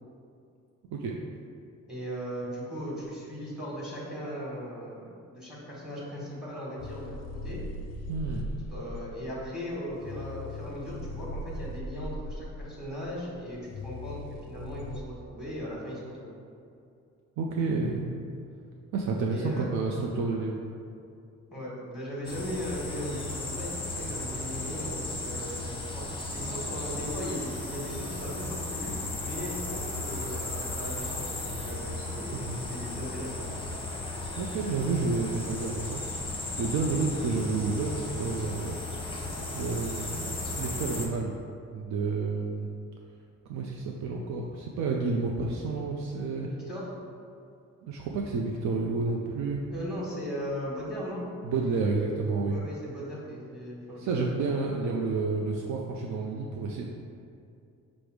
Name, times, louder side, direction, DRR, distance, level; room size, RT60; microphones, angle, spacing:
voice 1, 1.9-7.6 8.7-16.3 19.3-19.7 21.5-33.5 46.4-46.9 49.7-51.2 52.5-54.3, equal, ahead, -5 dB, 1.3 m, -38 dB
sound 1, 6.8-15.0, left 1 dB, 60° left, 0.4 m, -39 dB
voice 2, 8.1-8.4 17.4-18.1 18.9-20.6 32.5-32.6 34.4-36.0 36.6-38.8 39.5-41.4 41.7-42.7 43.5-46.5 47.8-49.6 51.4-52.5 54.0-56.9, right 4 dB, 70° right, -1 dB, 0.5 m, -30 dB
sound 2, 22.3-41.1, left 2 dB, 15° left, 0.7 m, -35 dB
4.9 x 2.0 x 4.7 m, 2.5 s
cardioid pair, 90°, 30 cm